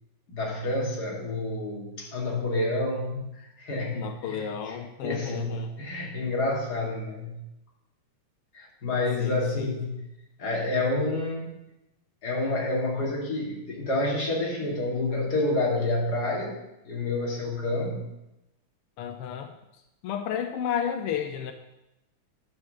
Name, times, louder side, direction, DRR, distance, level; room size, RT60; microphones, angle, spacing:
voice 1, 0.3-7.4 8.5-10.1 10.4-11.6 12.2-16.6 16.8-18.1, left 2 dB, 30° left, -2 dB, 2.6 m, -29 dB
voice 2, 3.9-5.7 9.2-9.7 19.0-19.5 20.0-21.5, left 8 dB, 80° left, 6 dB, 1.3 m, -32 dB
11.5 x 6.2 x 7.6 m, 0.91 s
omnidirectional pair, 3.6 m